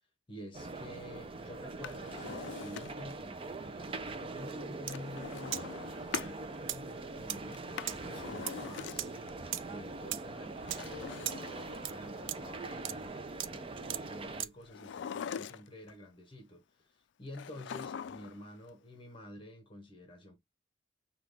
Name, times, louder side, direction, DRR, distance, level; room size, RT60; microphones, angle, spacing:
voice 1, 0.3-5.7 6.1-20.4, left 1 dB, 25° left, 1.0 m, -49 dB
sound 1, 0.5-14.4, right 3 dB, 30° right, 0.4 m, -43 dB
Drawer open or close, 1.7-3.2 4.9-6.4 7.5-9.3 10.6-12.2 14.7-15.9 17.3-18.5 18.7-18.8, left 7 dB, 65° left, 0.3 m, -43 dB
sound 2, 4.8-5.0 5.2-5.7 6.1-14.7, right 12 dB, 85° right, 0.4 m, -39 dB
5.7 x 2.3 x 3.4 m
head